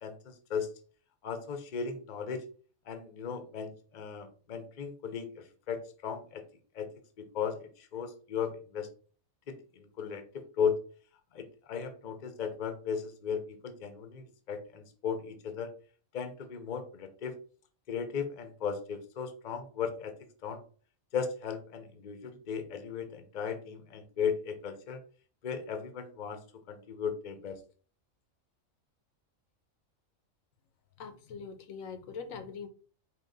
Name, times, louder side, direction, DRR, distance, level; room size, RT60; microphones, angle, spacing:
voice 1, 0.0-0.7 1.2-2.4 2.9-6.4 6.7-6.9 7.3-8.9 9.5-10.7 11.3-15.7 16.1-17.3 17.9-20.1 20.4-20.6 21.1-25.0 25.4-26.4 26.7-27.6, left 7 dB, 45° left, 0.7 m, -36 dB
voice 2, 31.0-32.7, left 5 dB, 80° left, 1.1 m, -42 dB
4.6 x 2.9 x 3.9 m
omnidirectional pair, 1.4 m